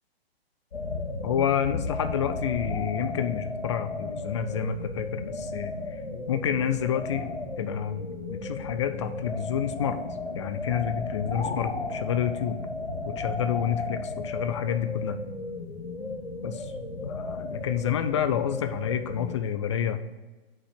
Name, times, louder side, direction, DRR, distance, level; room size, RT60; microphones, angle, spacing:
sound 1, 0.7-19.3, left 3 dB, 80° left, 1.2 m, -34 dB
voice 1, 1.2-5.7 6.3-7.3 7.6-10.0 10.3-12.6 13.1-15.2 16.4-16.5 17.0-20.0, left 9 dB, 30° left, 10 dB, 0.4 m, -29 dB
6.0 x 5.3 x 5.8 m, 1.2 s
figure-of-eight pair, 120°, 31 cm